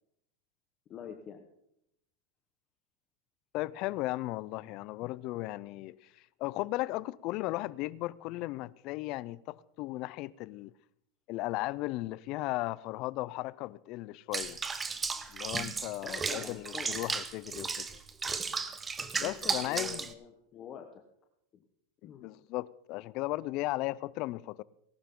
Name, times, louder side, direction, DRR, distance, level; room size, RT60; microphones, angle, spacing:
voice 1, 0.9-1.5 16.0-17.0 19.2-21.0 21.5-21.6 22.0-22.3, left 8 dB, 35° left, 1.1 m, -45 dB
voice 2, 3.5-6.0 6.4-10.7 11.3-14.6 15.3-18.0 19.2-20.1 22.0-24.6, left 18 dB, 50° left, 0.4 m, -36 dB
Water / Bathtub (filling or washing), 14.3-20.1, right 4 dB, 15° right, 0.8 m, -35 dB
18.5 x 11.5 x 3.8 m
supercardioid pair, 125°, 0 cm